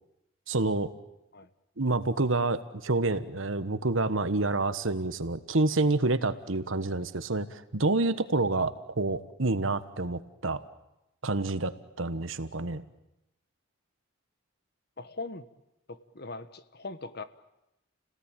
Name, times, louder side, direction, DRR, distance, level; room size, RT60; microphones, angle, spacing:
voice 1, 0.5-0.9 1.8-10.6 11.2-11.7 12.0-12.8, right 2 dB, 75° right, 12 dB, 1.4 m, -28 dB
voice 2, 15.0-15.5 15.9-17.2, left 3 dB, 50° left, 12 dB, 1.4 m, -40 dB
29.5 x 18.0 x 9.1 m, 0.90 s
head